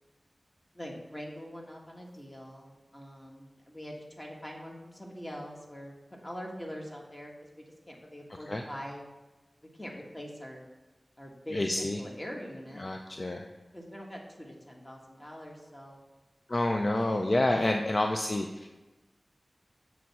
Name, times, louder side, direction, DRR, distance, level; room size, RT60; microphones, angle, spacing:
voice 1, 0.7-9.0 9.7-10.6 11.2-12.8 13.7-16.0 16.8-17.4, equal, 25° left, -1 dB, 1.3 m, -44 dB
voice 2, 11.5-12.0 12.8-13.5 16.5-18.8, left 1 dB, 50° left, 3 dB, 0.4 m, -28 dB
7.4 x 3.1 x 5.8 m, 1.1 s
wide cardioid pair, 45°, 0 cm